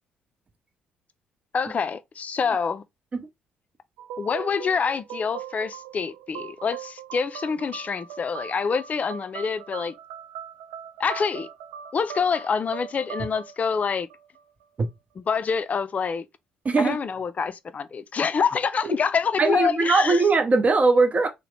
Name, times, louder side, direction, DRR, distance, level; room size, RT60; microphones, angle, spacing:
voice 1, 1.5-2.8 4.2-9.9 11.0-11.5 11.9-14.1 15.2-16.2 16.8-20.2, left 6 dB, 40° left, 0.3 m, -26 dB
sound 1, 4.0-14.6, right 8 dB, 75° right, 0.3 m, -40 dB
voice 2, 16.6-17.0 18.8-19.0 19.4-21.3, right 3 dB, 35° right, 0.7 m, -20 dB
2.8 x 2.0 x 3.1 m
hypercardioid pair, 45°, 4 cm